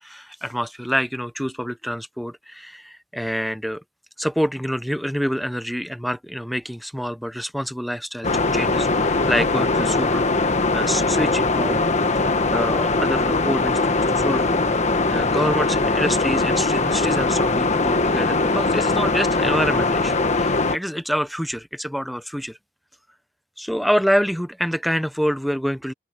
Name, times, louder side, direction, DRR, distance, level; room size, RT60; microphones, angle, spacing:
voice 1, 0.0-3.8 4.2-11.8 12.5-14.5 15.1-22.6 23.6-25.9, equal, ahead, 0.8 m, -26 dB
sound 1, 8.2-20.8, left 3 dB, 40° left, 1.4 m, -21 dB
open air
head